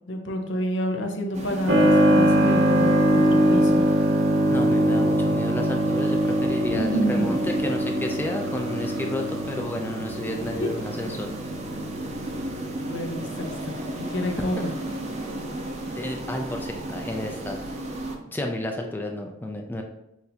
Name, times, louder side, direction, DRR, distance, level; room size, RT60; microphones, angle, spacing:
voice 1, 0.1-3.8 6.7-7.4 10.6-10.7 12.9-14.7, equal, 65° left, 4 dB, 0.7 m, -28 dB
sound 1, 1.3-18.2, right 1 dB, 35° right, 0.5 m, -35 dB
Keyboard (musical), 1.7-14.1, right 1 dB, 75° right, 0.7 m, -23 dB
voice 2, 4.5-11.3 14.2-14.6 16.0-17.6 18.3-19.8, left 1 dB, 10° left, 2 dB, 0.3 m, -31 dB
5.9 x 2.6 x 2.8 m, 0.85 s
head